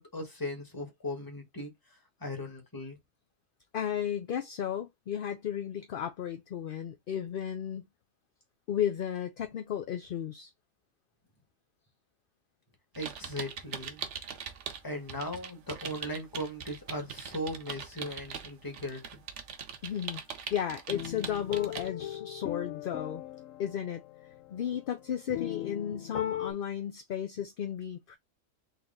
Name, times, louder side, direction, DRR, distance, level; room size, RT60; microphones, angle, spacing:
voice 1, 0.0-3.0 12.9-14.0 14.8-19.2 26.4-26.5, left 1 dB, 15° left, 1.4 m, -38 dB
voice 2, 3.7-7.8 8.7-10.5 19.8-20.2 20.5-23.2 23.6-24.0 24.5-28.2, left 9 dB, 55° left, 0.6 m, -34 dB
sound 1, 12.9-14.8 15.1-21.9, right 7 dB, 65° right, 1.1 m, -41 dB
sound 2, 20.9-26.5, left 12 dB, 80° left, 1.0 m, -39 dB
4.0 x 2.9 x 3.8 m
omnidirectional pair, 1.4 m